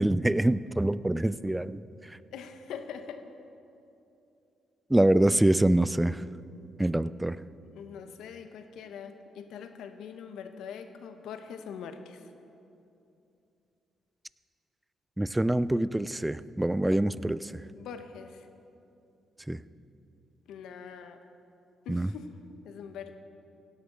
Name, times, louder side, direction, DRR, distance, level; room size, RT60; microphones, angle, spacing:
voice 1, 0.0-1.8 4.9-6.2 6.8-7.4 15.2-17.5 19.5-19.6 21.9-22.1, right 1 dB, 10° right, 17 dB, 0.4 m, -25 dB
voice 2, 2.3-3.2 7.0-7.1 7.6-12.2 17.7-18.5 20.5-21.2 21.8-22.3 22.6-23.2, left 7 dB, 80° left, 8 dB, 0.9 m, -43 dB
17.0 x 11.0 x 3.9 m, 2.7 s
supercardioid pair, 60°, 0 cm